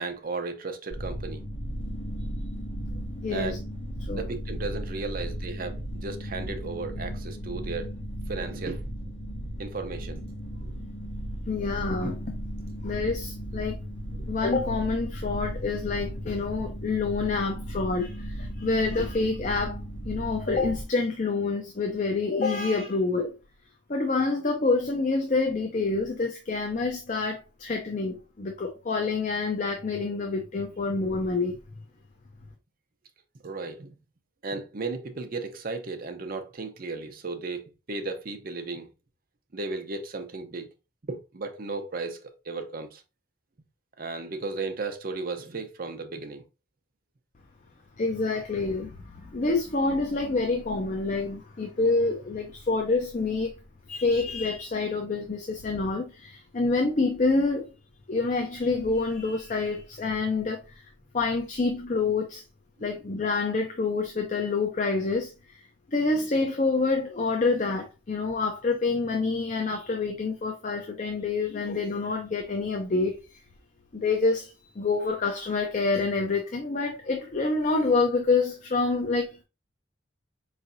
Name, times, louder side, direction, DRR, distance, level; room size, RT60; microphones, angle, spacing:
voice 1, 0.0-1.4 3.3-3.6 4.1-7.9 8.3-8.9 9.6-10.2 10.6-10.7 11.5-11.7 14.1-14.2 33.4-34.0 34.4-38.9 39.5-40.7 41.1-43.0 44.0-46.4, right 3 dB, 50° right, 0.7 m, -35 dB
sound 1, 0.9-20.8, equal, 70° left, 0.9 m, -36 dB
voice 2, 3.2-3.6 4.1-4.2 11.5-12.2 12.8-13.8 14.3-19.7 20.0-23.3 23.9-31.6 48.0-53.5 53.9-57.7 58.1-60.6 61.1-62.4 62.8-65.3 65.9-73.2 73.9-79.4, left 3 dB, 40° left, 0.6 m, -27 dB
4.8 x 3.2 x 2.6 m
head